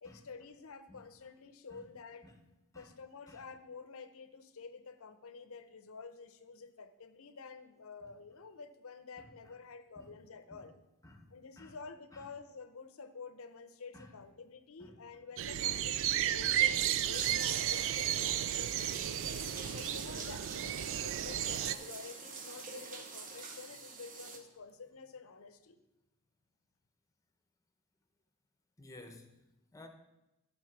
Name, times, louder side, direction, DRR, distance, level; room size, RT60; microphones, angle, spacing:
voice 1, 0.0-2.3 2.7-10.7 11.3-19.0 19.7-25.8, left 4 dB, 65° left, 11 dB, 0.7 m, -50 dB
sound 1, 15.4-21.8, right 11 dB, 60° right, 0.4 m, -33 dB
sound 2, 17.1-24.4, right 4 dB, 35° right, 1.0 m, -45 dB
voice 2, 28.8-29.3 29.7-29.9, left 2 dB, 15° left, 6 dB, 0.9 m, -54 dB
12.0 x 4.3 x 6.0 m, 0.96 s
head